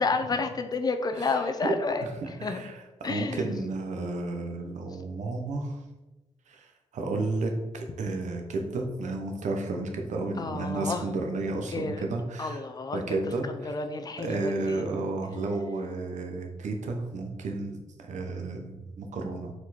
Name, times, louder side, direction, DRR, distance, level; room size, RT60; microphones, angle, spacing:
voice 1, 0.0-2.0 2.4-2.6 3.0-3.5 10.4-11.0 11.7-12.0 12.4-13.2 13.6-14.8, left 4 dB, 30° left, 7 dB, 0.5 m, -30 dB
voice 2, 1.1-1.7 2.0-5.8 6.5-12.6 12.9-13.7 14.2-19.5, right 2 dB, 80° right, 3 dB, 1.1 m, -32 dB
6.8 x 4.5 x 4.3 m, 1.1 s
wide cardioid pair, 170°, 12 cm